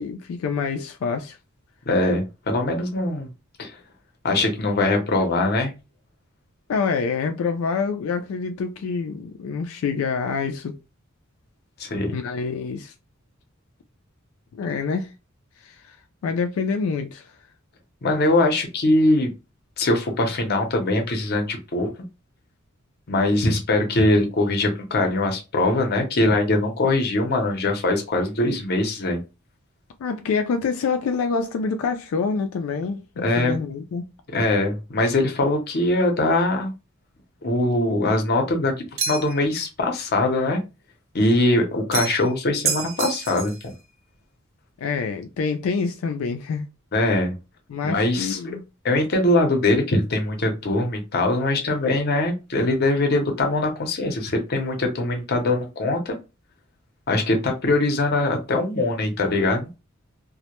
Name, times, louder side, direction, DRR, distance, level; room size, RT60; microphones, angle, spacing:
voice 1, 0.0-1.4 6.7-10.7 12.1-12.9 14.5-15.1 15.6-15.9 16.2-17.3 30.0-34.0 44.8-46.7 47.7-48.6, left 5 dB, 90° left, 0.3 m, -26 dB
voice 2, 1.9-3.3 3.6-3.8 4.2-5.7 11.8-12.1 18.0-19.3 19.8-21.9 23.1-29.2 33.2-33.6 34.3-36.7 37.4-38.7 39.1-40.6 41.1-43.7 46.9-47.4 47.8-48.4 48.8-56.2 57.1-59.7, left 2 dB, 50° left, 0.6 m, -22 dB
sound 1, 39.0-39.5 41.9-42.3 42.7-43.6, right 6 dB, 70° right, 0.6 m, -28 dB
2.1 x 2.1 x 2.9 m
head